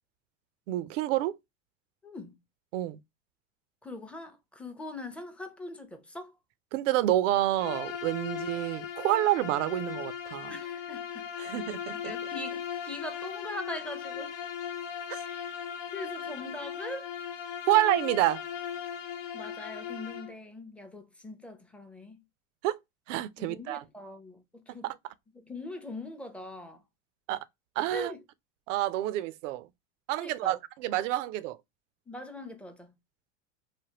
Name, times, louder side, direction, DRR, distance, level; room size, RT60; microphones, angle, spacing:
voice 1, 0.7-1.4 2.7-3.0 6.7-10.5 11.4-12.0 15.1-15.2 17.7-18.4 22.6-22.8 23.1-23.8 24.8-24.9 27.3-27.4 27.8-28.1 28.7-29.7 30.1-31.6, right 14 dB, 70° right, 0.5 m, -28 dB
voice 2, 2.0-2.4 3.8-6.3 10.5-11.3 11.9-14.3 15.2-15.6 15.9-17.1 19.3-22.2 23.4-24.9 25.3-26.8 27.9-28.2 30.2-30.6 32.1-32.9, left 2 dB, 5° left, 0.5 m, -42 dB
Bowed string instrument, 7.6-20.4, left 8 dB, 65° left, 0.8 m, -38 dB
3.4 x 2.1 x 2.8 m
hypercardioid pair, 100°, 39 cm